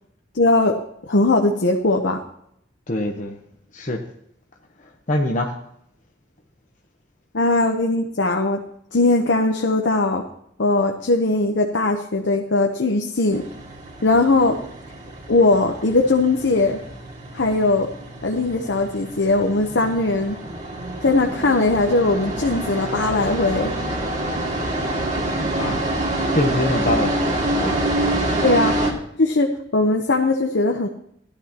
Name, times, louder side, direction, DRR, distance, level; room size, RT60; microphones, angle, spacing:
voice 1, 0.3-2.2 7.3-8.6 8.9-10.3 10.6-13.5 14.0-14.6 15.3-16.8 17.3-17.9 18.2-20.4 21.0-23.7 28.4-28.8 29.2-30.9, left 2 dB, 70° left, 3 dB, 0.9 m, -19 dB
voice 2, 2.9-3.4 3.7-4.0 5.1-5.5 25.5-25.8 26.3-27.8, left 1 dB, 45° left, 1 dB, 1.0 m, -24 dB
sound 1, 13.3-28.9, right 1 dB, 40° right, 2.3 m, -27 dB
16.0 x 11.5 x 2.9 m, 0.74 s
head